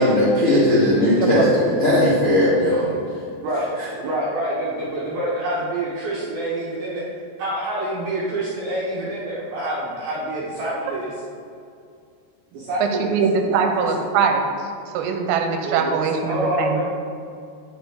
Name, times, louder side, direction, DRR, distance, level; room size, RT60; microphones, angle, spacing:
voice 1, 0.0-3.0 3.8-3.9, left 1 dB, 60° left, -11 dB, 1.4 m, -18 dB
voice 2, 0.8-1.5 3.4-3.7 4.0-7.0 7.4-11.1 12.5-13.9 15.6-16.8, right 1 dB, 70° right, -7 dB, 2.3 m, -27 dB
voice 3, 12.8-14.7 14.9-16.8, right 6 dB, 90° right, 4 dB, 3.2 m, -22 dB
9.2 x 6.8 x 3.5 m, 2.3 s
omnidirectional pair, 5.8 m